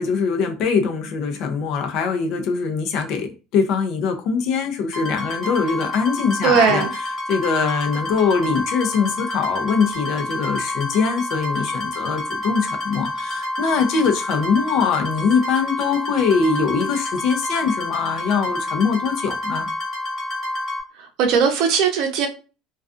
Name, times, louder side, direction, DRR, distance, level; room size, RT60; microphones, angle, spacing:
voice 1, 0.0-19.7, left 5 dB, 65° left, 4 dB, 0.5 m, -22 dB
Horror style string sound, 4.9-20.8, left 1 dB, 35° left, 1.2 m, -28 dB
voice 2, 6.4-6.9 21.2-22.3, right 6 dB, 65° right, 5 dB, 0.6 m, -18 dB
2.3 x 2.3 x 2.4 m, 0.32 s
cardioid pair, 125°, 0 cm